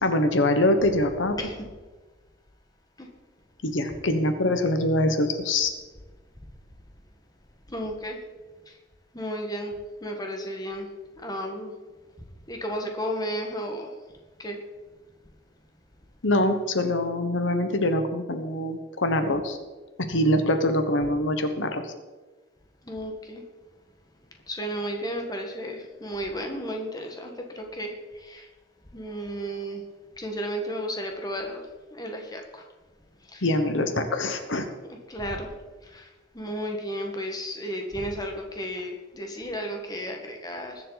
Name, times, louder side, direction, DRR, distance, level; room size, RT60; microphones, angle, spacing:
voice 1, 0.0-1.4 3.6-5.7 16.2-19.6 20.0-21.9 33.4-34.7, left 1 dB, 75° left, 7 dB, 1.2 m, -24 dB
voice 2, 7.7-8.2 9.1-9.7 10.0-10.9 11.2-11.7 12.5-13.9 14.4-14.6 22.9-23.4 24.5-27.9 28.2-28.5 28.9-29.8 30.2-31.6 31.9-32.6 33.3-33.4 34.9-35.5 35.9-36.1 36.3-40.8, equal, 20° left, 3 dB, 1.6 m, -33 dB
20.5 x 7.7 x 4.1 m, 1.3 s
head